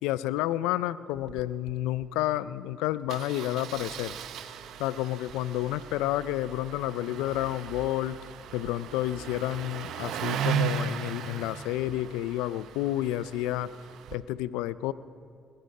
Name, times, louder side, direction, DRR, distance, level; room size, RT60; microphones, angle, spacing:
voice 1, 0.0-4.2 4.8-8.2 8.5-13.7 14.1-14.9, left 14 dB, 85° left, 17 dB, 0.3 m, -30 dB
Engine starting, 1.2-1.4 1.7-1.8 2.0-2.2 3.1-14.2, right 8 dB, 75° right, 0.6 m, -37 dB
20.0 x 8.6 x 5.2 m, 2.2 s
supercardioid pair, 55°, 0 cm